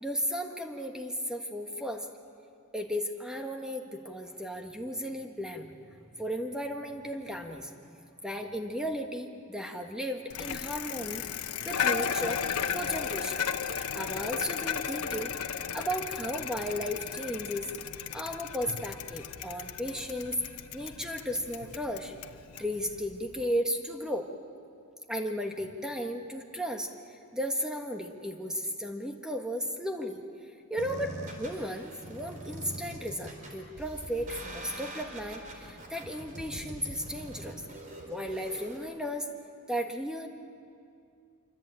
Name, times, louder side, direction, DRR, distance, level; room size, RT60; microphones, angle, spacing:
voice 1, 0.0-2.1 2.7-7.7 8.2-11.2 11.6-12.4 12.7-17.7 18.1-20.4 20.7-22.1 22.6-24.3 25.1-30.2 30.7-37.6 38.1-39.3 39.7-40.3, equal, 5° right, 3 dB, 1.5 m, -35 dB
Bicycle, 10.3-23.4, left 7 dB, 90° left, 1.0 m, -35 dB
sound 1, 30.8-38.8, right 1 dB, 35° right, 4.0 m, -43 dB
26.0 x 25.0 x 9.0 m, 2.4 s
head